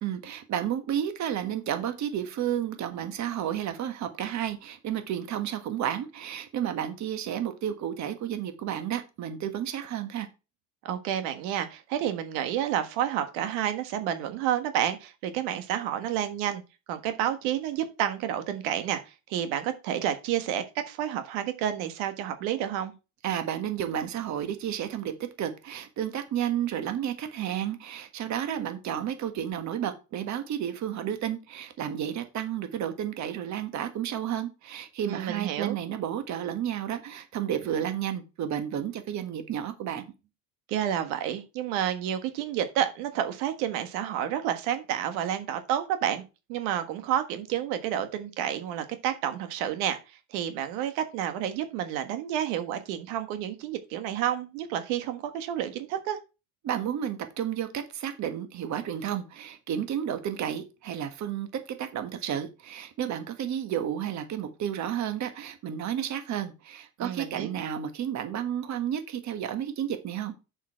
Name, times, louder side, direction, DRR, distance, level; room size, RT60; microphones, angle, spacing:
voice 1, 0.0-10.3 23.2-40.0 56.6-70.3, right 10 dB, 45° right, 1.5 m, -32 dB
voice 2, 10.8-16.6 16.9-22.9 35.1-35.8 40.7-46.2 46.5-56.2 67.0-67.5, right 10 dB, 80° right, 1.5 m, -30 dB
7.2 x 6.9 x 4.3 m
cardioid pair, 130°, 40 cm